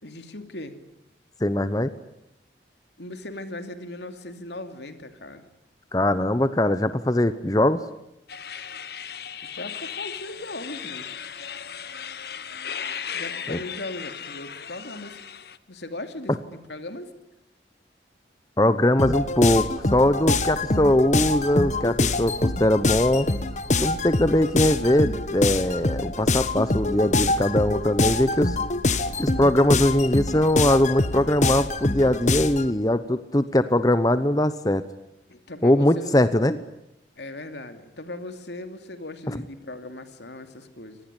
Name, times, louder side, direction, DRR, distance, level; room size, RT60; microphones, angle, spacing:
voice 1, 0.0-0.8 3.0-5.5 9.4-11.1 13.1-15.2 15.7-17.1 35.3-36.2 37.2-41.0, left 2 dB, 75° left, 8 dB, 2.7 m, -38 dB
voice 2, 1.4-1.9 5.9-7.8 13.5-13.6 18.6-23.3 23.8-28.6 29.2-34.8 35.6-36.6 39.3-39.4, left 1 dB, 20° left, 12 dB, 0.9 m, -21 dB
sound 1, 8.3-15.6, left 8 dB, 60° left, 1.1 m, -36 dB
sound 2, 19.0-32.7, left 2 dB, 40° left, 1.4 m, -25 dB
26.0 x 19.5 x 10.0 m, 0.85 s
head